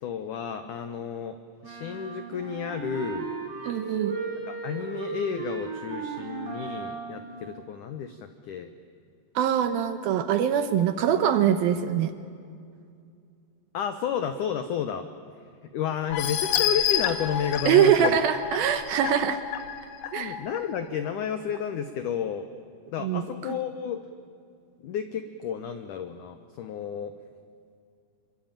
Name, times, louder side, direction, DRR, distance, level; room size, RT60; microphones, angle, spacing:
voice 1, 0.0-3.3 4.4-8.7 13.7-15.1 15.7-18.2 20.0-22.5 22.9-24.0 24.8-27.1, left 8 dB, 90° left, 9 dB, 1.8 m, -31 dB
sound 1, 1.6-7.4, right 5 dB, 55° right, 5.6 m, -36 dB
voice 2, 3.7-4.2 9.4-12.1 17.6-19.4 20.1-20.4 23.0-23.2, right 9 dB, 70° right, 10 dB, 2.4 m, -23 dB
sound 2, 16.1-20.6 21.1-21.2 21.6-21.7, left 10 dB, 65° left, 2.3 m, -29 dB
26.5 x 24.0 x 9.0 m, 2.3 s
omnidirectional pair, 5.1 m